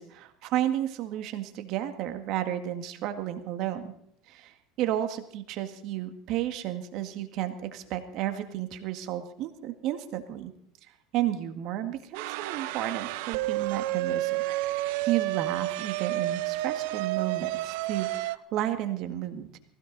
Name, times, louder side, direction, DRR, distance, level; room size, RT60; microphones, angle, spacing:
voice 1, 0.0-3.9 4.3-10.5 11.1-14.4 15.1-19.6, right 12 dB, 55° right, 8 dB, 1.7 m, -32 dB
sound 1, 12.1-18.4, right 17 dB, 75° right, 0.7 m, -30 dB
19.5 x 16.5 x 4.0 m, 0.68 s
supercardioid pair, 120°, 0 cm